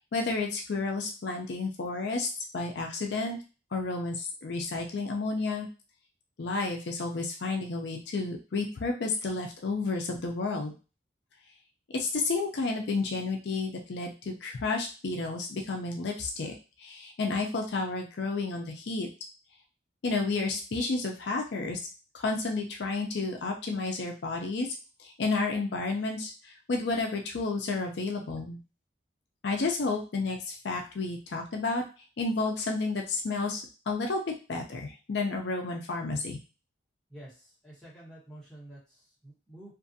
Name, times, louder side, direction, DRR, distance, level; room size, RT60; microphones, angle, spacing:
voice 1, 0.1-3.4 3.7-5.7 6.4-10.7 11.9-19.1 20.0-21.8 22.1-24.7 25.0-28.6 29.4-31.8 32.2-34.2 34.5-36.4, left 3 dB, 65° left, 1 dB, 0.4 m, -31 dB
voice 2, 37.1-39.7, right 1 dB, 5° left, -8 dB, 1.1 m, -49 dB
2.5 x 2.4 x 2.6 m, 0.33 s
head